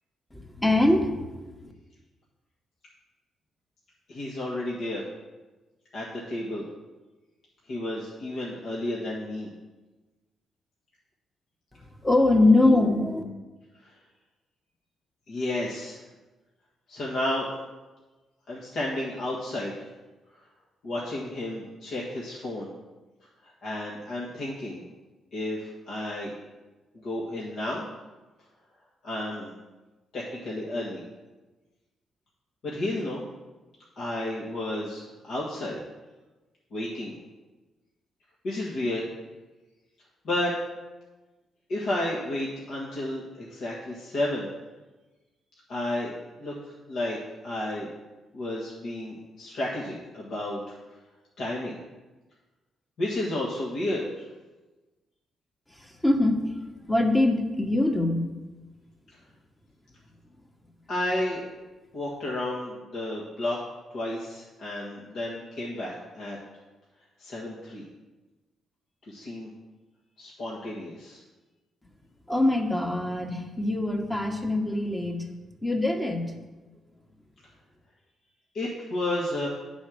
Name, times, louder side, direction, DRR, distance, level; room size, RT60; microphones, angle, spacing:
voice 1, 0.3-1.7 12.0-13.2 55.7-56.5 56.9-58.2 72.3-75.3 75.6-76.3, left 2 dB, 15° left, 3 dB, 1.3 m, -23 dB
voice 2, 4.1-5.0 5.9-6.6 7.7-9.5 13.8-13.9 15.3-16.0 16.9-17.5 18.5-19.7 20.8-22.7 23.4-24.8 25.3-26.3 27.0-27.9 29.0-29.5 30.1-31.0 32.6-33.2 34.0-35.8 36.7-37.2 38.4-39.0 40.2-40.5 41.7-44.5 45.7-46.1 46.4-47.2 47.4-47.9 48.3-50.8 51.4-51.8 53.0-54.3 60.9-61.5 61.9-63.6 63.9-66.4 67.2-67.8 69.1-69.5 70.2-71.2 78.5-79.5, left 1 dB, 70° left, -5 dB, 1.5 m, -32 dB
8.5 x 4.2 x 6.2 m, 1.2 s
cardioid pair, 70°, 0 cm